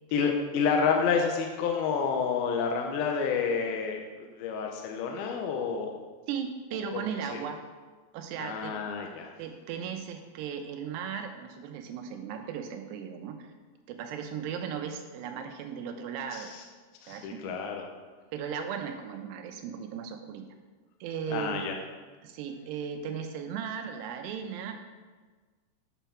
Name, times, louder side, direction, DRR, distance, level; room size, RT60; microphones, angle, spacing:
voice 1, 0.1-6.0 6.9-7.0 7.3-7.4 8.4-9.3 16.3-16.6 17.0-17.9 21.3-21.7, left 6 dB, 75° left, 2 dB, 2.4 m, -29 dB
voice 2, 6.3-7.6 8.1-8.8 9.4-13.5 13.9-16.5 17.1-17.9 18.3-20.5 21.0-21.8 22.2-24.8, right 7 dB, 85° right, 5 dB, 2.7 m, -37 dB
9.0 x 4.4 x 5.7 m, 1.4 s
omnidirectional pair, 4.8 m